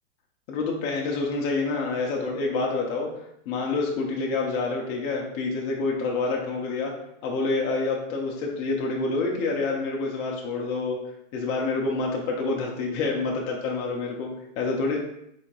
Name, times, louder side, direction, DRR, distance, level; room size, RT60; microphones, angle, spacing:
voice 1, 0.5-3.1 3.4-6.9 7.2-11.0 11.3-14.3 14.6-15.0, left 3 dB, 45° left, -1 dB, 1.2 m, -27 dB
4.4 x 4.4 x 2.7 m, 0.78 s
hypercardioid pair, 120°, 40 cm